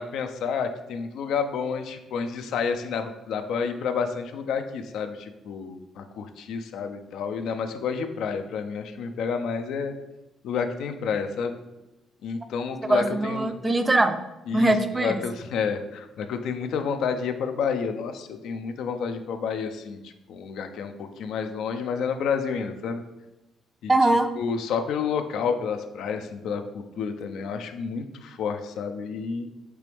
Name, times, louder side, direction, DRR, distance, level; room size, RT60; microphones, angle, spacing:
voice 1, 0.0-9.9 10.4-11.6 12.2-13.6 14.5-23.0 23.8-23.9 24.4-29.5, left 6 dB, 80° left, 7 dB, 0.4 m, -30 dB
voice 2, 12.9-14.2 14.5-15.2 23.9-24.3, right 2 dB, 20° right, 9 dB, 0.4 m, -21 dB
4.6 x 3.0 x 3.3 m, 0.97 s
cardioid pair, 90°, 0 cm